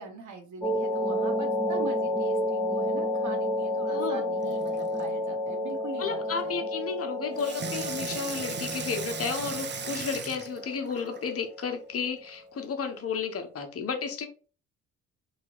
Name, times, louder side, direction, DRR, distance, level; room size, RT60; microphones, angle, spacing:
voice 1, 0.0-6.7, right 5 dB, 65° right, 1.0 m, -42 dB
sound 1, 0.6-12.1, left 1 dB, 5° left, 1.0 m, -31 dB
voice 2, 3.9-4.3 6.0-14.3, left 6 dB, 45° left, 0.9 m, -33 dB
Water tap faucet / Sink (filling or washing), 4.4-5.1 7.4-11.3 12.0-12.1, right 6 dB, 35° right, 0.6 m, -37 dB
3.0 x 2.4 x 2.9 m
supercardioid pair, 60°, 33 cm